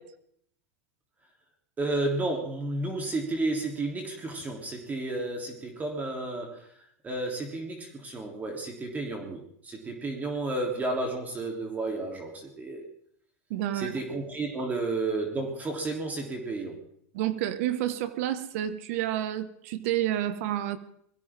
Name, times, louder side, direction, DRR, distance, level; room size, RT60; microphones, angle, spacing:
voice 1, 1.8-6.7 7.0-12.9 13.7-16.8, right 2 dB, 20° right, 2 dB, 3.4 m, -32 dB
voice 2, 13.5-14.0 17.1-20.8, right 12 dB, 70° right, 12 dB, 1.8 m, -29 dB
22.5 x 16.0 x 3.8 m, 0.68 s
supercardioid pair, 125°, 8 cm